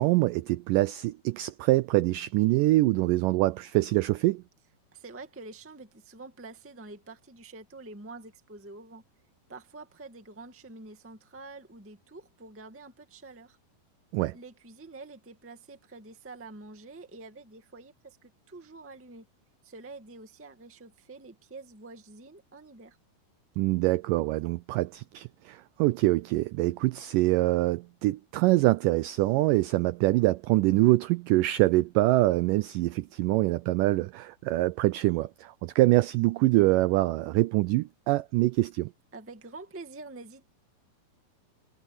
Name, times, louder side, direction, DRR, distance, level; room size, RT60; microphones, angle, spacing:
voice 1, 0.0-4.4 14.1-14.4 23.6-38.9, right 19 dB, 85° right, 1.9 m, -24 dB
voice 2, 4.9-9.0 9.5-13.6 14.3-19.3 19.6-23.0 39.1-40.5, right 3 dB, 10° right, 0.6 m, -47 dB
omnidirectional pair, 4.4 m